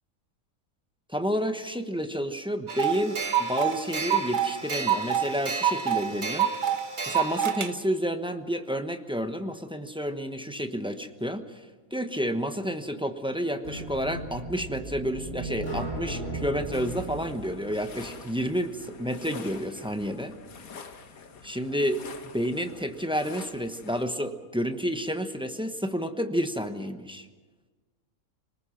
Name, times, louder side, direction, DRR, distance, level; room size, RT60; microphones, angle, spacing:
voice 1, 1.1-6.5 7.1-11.6 11.9-20.4 21.4-22.0 22.3-27.3, equal, 5° right, 7 dB, 1.0 m, -30 dB
sound 1, 2.7-7.7, right 8 dB, 40° right, 0.9 m, -27 dB
sound 2, 13.6-18.6, right 2 dB, 60° left, 8.0 m, -37 dB
sound 3, 16.7-24.1, left 5 dB, 80° left, 1.8 m, -46 dB
26.0 x 19.5 x 5.9 m, 1.4 s
omnidirectional pair, 1.5 m